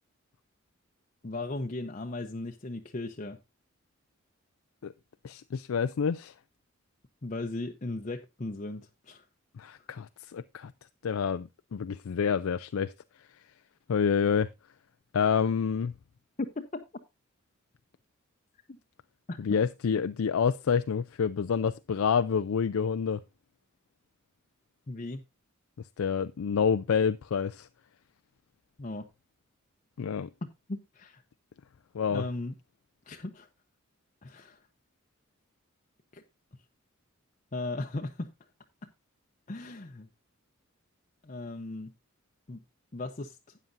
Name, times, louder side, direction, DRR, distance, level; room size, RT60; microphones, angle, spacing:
voice 1, 1.2-3.4 7.2-9.2 9.8-9.9 16.4-16.8 19.3-19.6 24.9-25.2 28.8-29.1 30.7-31.2 32.1-32.5 33.1-33.5 34.2-34.6 36.1-36.2 37.5-38.3 39.5-40.1 41.2-41.9 42.5-42.6 42.9-43.4, left 2 dB, 35° left, 0.7 m, -37 dB
voice 2, 5.2-6.3 9.6-10.7 11.0-12.9 13.9-14.5 15.1-15.9 19.4-23.2 26.0-27.7 30.0-30.3 31.9-32.2, left 6 dB, 85° left, 0.4 m, -28 dB
13.0 x 9.2 x 2.6 m
head